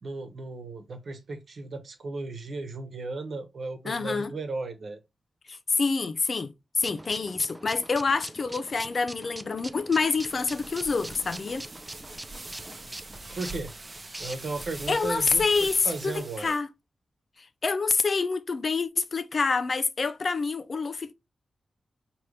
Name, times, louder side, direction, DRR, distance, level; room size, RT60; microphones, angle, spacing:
voice 1, 0.0-5.0 13.0-13.7 14.2-15.4 15.8-16.5, right 3 dB, 70° right, 1.1 m, -35 dB
voice 2, 3.8-4.3 5.5-11.7 14.9-16.7 17.6-21.1, left 4 dB, 60° left, 0.5 m, -27 dB
sound 1, 6.8-14.7, right 1 dB, 15° right, 0.4 m, -43 dB
sound 2, 10.1-16.6, right 2 dB, 35° right, 0.8 m, -43 dB
4.9 x 3.0 x 3.1 m
cardioid pair, 60°, 0 cm